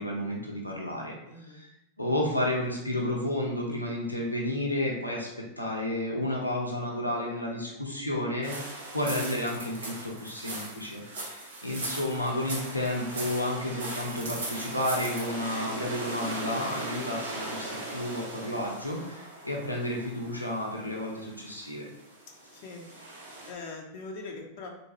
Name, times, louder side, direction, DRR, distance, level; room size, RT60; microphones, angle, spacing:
voice 1, 0.0-1.7 2.0-5.3 5.6-21.9, left 1 dB, 85° left, -2 dB, 0.6 m, -31 dB
voice 2, 1.2-1.6 22.5-22.9 23.5-24.7, left 3 dB, 45° left, 1 dB, 0.6 m, -41 dB
sound 1, 8.4-23.5, right 2 dB, 65° right, 0.8 m, -39 dB
3.6 x 2.6 x 3.1 m, 0.85 s
figure-of-eight pair, 90°, 0 cm